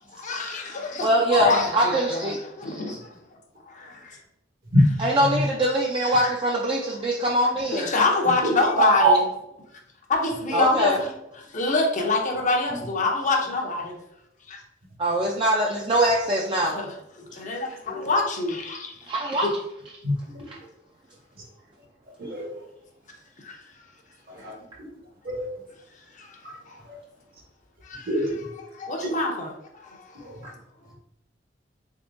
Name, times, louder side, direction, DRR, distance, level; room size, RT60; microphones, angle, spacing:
voice 1, 0.1-2.3 2.6-3.1 3.7-4.2 7.7-9.1 10.1-11.1 11.5-14.0 14.5-14.6 16.6-18.9 19.4-19.5 23.4-23.6 26.2-26.3 26.7-26.8 27.9-28.1 28.8-29.5 29.8-30.0, left 3 dB, 40° left, 1 dB, 0.6 m, -25 dB
voice 2, 1.0-2.4 2.7-3.0 5.0-7.9 10.5-11.0 15.0-16.8 19.1-19.5, right 1 dB, 25° right, -3 dB, 0.4 m, -23 dB
voice 3, 8.3-9.2 10.5-10.6 12.7-12.8 17.9-18.1 20.0-20.4 22.2-22.5 24.3-24.5 25.2-25.4 26.4-26.6 26.9-27.0 28.1-28.4 29.0-29.2 30.2-30.4, right 1 dB, 50° right, 1 dB, 0.9 m, -24 dB
3.6 x 3.6 x 2.5 m, 0.84 s
head